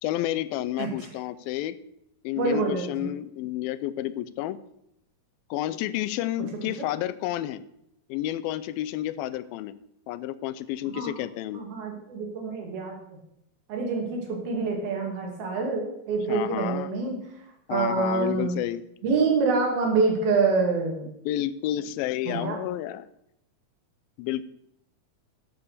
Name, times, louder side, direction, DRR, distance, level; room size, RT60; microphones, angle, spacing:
voice 1, 0.0-1.8 2.2-4.6 5.5-7.6 8.1-9.8 10.1-11.6 16.3-16.9 17.7-18.8 21.3-23.1 24.2-24.4, left 13 dB, 85° left, 16 dB, 2.4 m, -30 dB
voice 2, 2.4-3.1 6.8-6.9 10.9-11.1 11.5-13.0 13.7-17.2 17.7-18.5 19.0-21.1 22.3-22.6, right 4 dB, 85° right, 1 dB, 4.3 m, -26 dB
11.5 x 7.1 x 6.6 m, 0.79 s
omnidirectional pair, 4.2 m